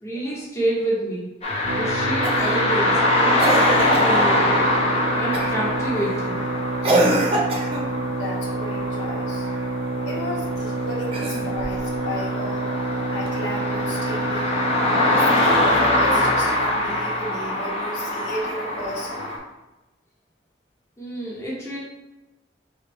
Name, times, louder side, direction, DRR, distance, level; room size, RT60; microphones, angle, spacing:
voice 1, 0.0-1.3 1.7-4.7 5.2-6.4 21.0-21.8, right 1 dB, 15° left, -5 dB, 0.9 m, -28 dB
sound 1, 1.4-19.4, left 1 dB, 35° left, 0.7 m, -23 dB
sound 2, 1.6-16.2, right 3 dB, 60° right, 0.3 m, -28 dB
Cough, 2.2-2.6 3.4-4.2 5.3-5.7 6.8-7.9 11.0-11.8 13.3-13.4, right 1 dB, 30° right, 0.7 m, -23 dB
voice 2, 8.0-9.5 10.0-12.7 13.1-14.5 15.1-19.3, left 1 dB, 75° left, -3 dB, 1.1 m, -33 dB
3.9 x 3.4 x 3.4 m, 1.0 s
head